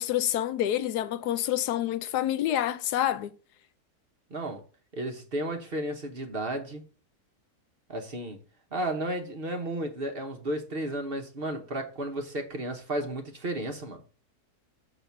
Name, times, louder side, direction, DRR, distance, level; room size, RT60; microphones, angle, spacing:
voice 1, 0.0-3.3, left 12 dB, 80° left, 1.1 m, -27 dB
voice 2, 4.3-4.6 4.9-6.8 7.9-8.4 8.7-14.0, right 1 dB, 40° right, 1.1 m, -33 dB
6.8 x 4.1 x 5.7 m
omnidirectional pair, 1.7 m